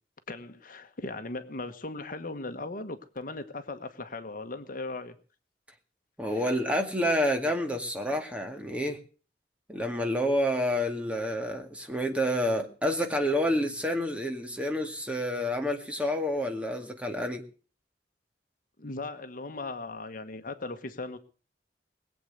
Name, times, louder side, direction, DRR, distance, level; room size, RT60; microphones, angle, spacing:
voice 1, 0.3-5.2 6.3-6.6 18.8-21.2, left 2 dB, 50° left, 1.3 m, -38 dB
voice 2, 6.2-9.0 9.7-17.4, equal, 10° right, 2.0 m, -29 dB
21.0 x 8.2 x 6.6 m
head